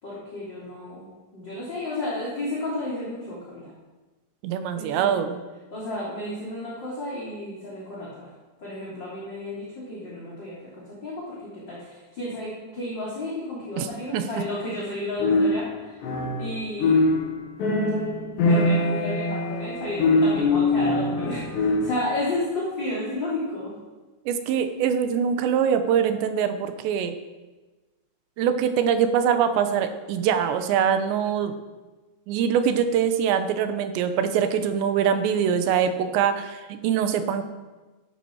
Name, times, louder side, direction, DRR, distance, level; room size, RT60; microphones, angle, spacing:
voice 1, 0.0-3.7 4.8-5.1 5.7-8.3 8.6-16.1 16.4-17.1 18.4-23.7, left 1 dB, 30° left, -7 dB, 3.3 m, -32 dB
voice 2, 4.4-5.4 13.8-13.9 14.1-14.4 24.3-27.2 28.4-31.5 32.3-37.4, right 8 dB, 80° right, 9 dB, 3.1 m, -23 dB
sound 1, 15.2-16.5 16.8-22.1, left 2 dB, 75° left, 3.9 m, -23 dB
15.5 x 12.0 x 4.7 m, 1.2 s
omnidirectional pair, 5.1 m